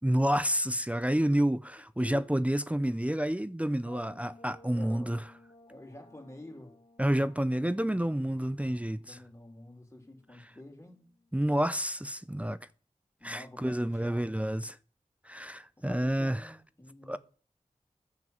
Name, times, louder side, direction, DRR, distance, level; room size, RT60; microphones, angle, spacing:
voice 1, 0.0-5.2 7.0-9.2 11.3-12.6 13.2-14.8 15.2-16.5 17.1-17.2, right 1 dB, 10° right, 0.5 m, -29 dB
sound 1, 3.9-11.5, left 2 dB, 85° left, 2.2 m, -58 dB
voice 2, 4.7-5.2 5.7-6.7 9.0-11.1 13.2-14.3 15.8-17.2, left 1 dB, 20° left, 3.1 m, -49 dB
10.5 x 5.8 x 7.8 m
wide cardioid pair, 50°, 13 cm